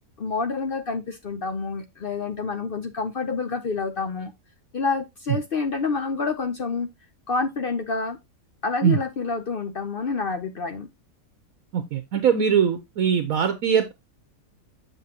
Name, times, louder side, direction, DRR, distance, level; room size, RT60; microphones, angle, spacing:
voice 1, 0.2-4.3 4.7-6.9 7.3-8.2 8.6-10.9, left 4 dB, 60° left, 0.5 m, -28 dB
voice 2, 11.7-13.9, right 7 dB, 65° right, 1.1 m, -21 dB
7.2 x 6.9 x 2.8 m
omnidirectional pair, 1.7 m